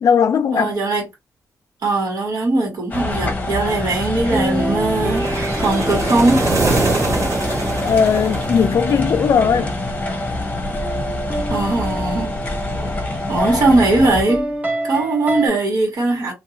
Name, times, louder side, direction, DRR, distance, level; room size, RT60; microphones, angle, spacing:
voice 1, 0.0-0.8 7.8-9.7, left 7 dB, 60° left, 0.4 m, -17 dB
voice 2, 0.5-1.1 1.8-6.5 11.5-12.3 13.3-14.5 14.8-16.3, right 2 dB, 70° right, 1.7 m, -19 dB
sound 1, 2.9-14.2, left 1 dB, 25° left, 0.8 m, -25 dB
sound 2, 4.3-7.1 8.5-13.0 14.3-15.5, right 1 dB, 20° right, 0.8 m, -28 dB
sound 3, 5.0-9.2, right 3 dB, 50° right, 1.6 m, -23 dB
2.7 x 2.6 x 2.9 m
wide cardioid pair, 130°, 6 cm